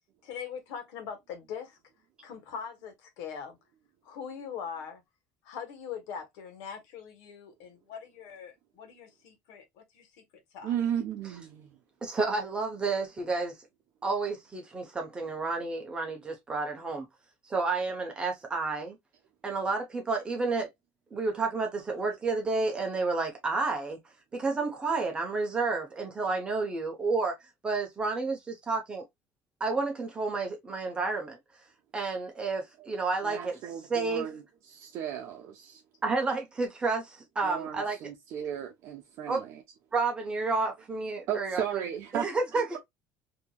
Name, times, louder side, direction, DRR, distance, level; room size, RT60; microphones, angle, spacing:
voice 1, 0.2-1.8 2.2-3.6 4.0-5.0 5.4-10.2 10.5-10.7, left 7 dB, 75° left, 1.3 m, -41 dB
voice 2, 10.6-11.8 33.2-35.8 37.4-39.5 41.3-42.3 42.5-42.8, right 9 dB, 55° right, 0.7 m, -35 dB
voice 3, 12.0-13.5 14.0-17.1 17.4-19.0 19.4-20.7 21.1-24.0 24.3-27.4 27.6-29.0 29.6-31.4 31.9-33.6 33.9-34.3 36.0-38.0 39.3-39.4 39.9-41.8 42.1-42.8, right 3 dB, 15° right, 0.8 m, -30 dB
4.4 x 2.8 x 2.2 m
cardioid pair, 155°, 6 cm